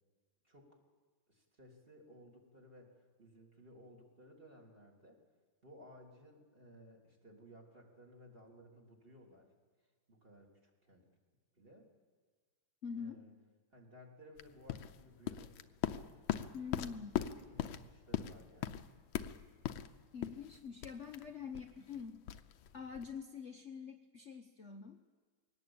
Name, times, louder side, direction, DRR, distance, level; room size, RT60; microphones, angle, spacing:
voice 1, 0.4-0.8 1.3-5.2 5.6-9.5 10.1-11.1 11.6-11.9 12.9-13.4 13.7-15.8 17.1-18.8, equal, 30° right, -1 dB, 3.5 m, -59 dB
voice 2, 12.8-13.2 16.5-17.1 20.1-22.2 22.7-25.0, left 6 dB, 45° left, 4 dB, 1.1 m, -45 dB
sound 1, 14.4-23.2, left 11 dB, 85° left, 1.6 m, -41 dB
22.0 x 18.0 x 8.8 m, 1.5 s
omnidirectional pair, 2.1 m